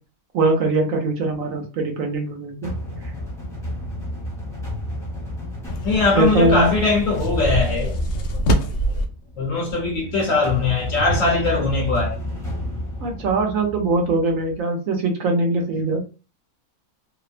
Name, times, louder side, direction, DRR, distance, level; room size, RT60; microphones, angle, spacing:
voice 1, 0.3-2.7 6.2-6.7 13.0-16.0, right 3 dB, 65° right, 1.0 m, -21 dB
sound 1, 2.6-14.5, left 1 dB, 5° left, 0.7 m, -31 dB
sound 2, 5.7-9.1, right 1 dB, 85° left, 0.5 m, -25 dB
voice 2, 5.8-7.9 9.4-12.2, left 3 dB, 70° left, 0.9 m, -20 dB
2.8 x 2.0 x 2.4 m
omnidirectional pair, 1.6 m